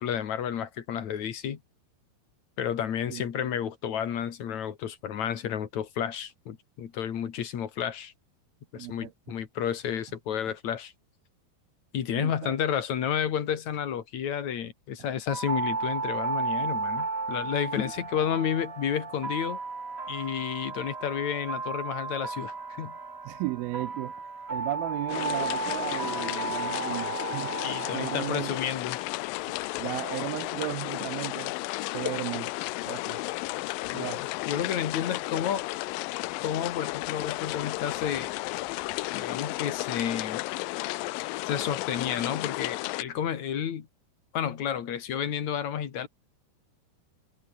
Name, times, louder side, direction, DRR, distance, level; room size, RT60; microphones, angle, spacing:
voice 1, 0.0-1.6 2.6-8.1 8.7-10.9 11.9-19.6 20.1-22.9 27.6-29.0 33.9-34.1 34.5-35.7 36.4-38.3 39.1-40.4 41.4-43.9 44.3-46.1, left 9 dB, 50° left, 3.0 m, -31 dB
voice 2, 8.8-9.1 12.1-12.6 23.3-24.1 24.5-27.5 27.9-28.6 29.5-31.6 31.9-32.5 32.9-33.2 33.9-34.2, right 20 dB, 80° right, 2.3 m, -35 dB
sound 1, 15.3-29.2, right 3 dB, 25° right, 1.4 m, -34 dB
sound 2, 25.1-43.0, left 21 dB, 85° left, 2.0 m, -33 dB
omnidirectional pair, 4.6 m